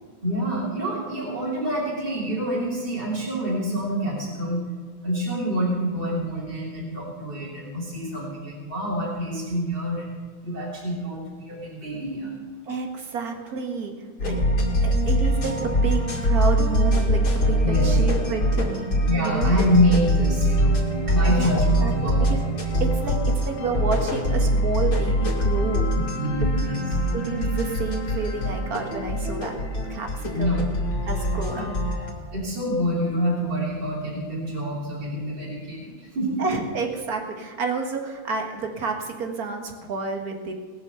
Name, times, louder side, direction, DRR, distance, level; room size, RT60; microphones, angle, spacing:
voice 1, 0.2-4.6 5.0-10.2 10.4-12.3 17.6-17.9 19.1-22.3 26.2-26.8 30.2-30.6 31.5-31.7 32.3-36.4, equal, 25° right, -6 dB, 3.4 m, -26 dB
voice 2, 12.7-13.9 14.2-14.4 14.8-19.5 21.3-21.5 21.8-22.4 22.8-23.2 23.4-25.9 27.1-29.6 29.9-30.6 31.0-31.7 36.4-40.5, right 4 dB, 50° right, 4 dB, 2.0 m, -30 dB
sound 1, 14.2-32.1, equal, 80° left, 3.1 m, -23 dB
19.0 x 6.8 x 6.9 m, 1.5 s
omnidirectional pair, 2.1 m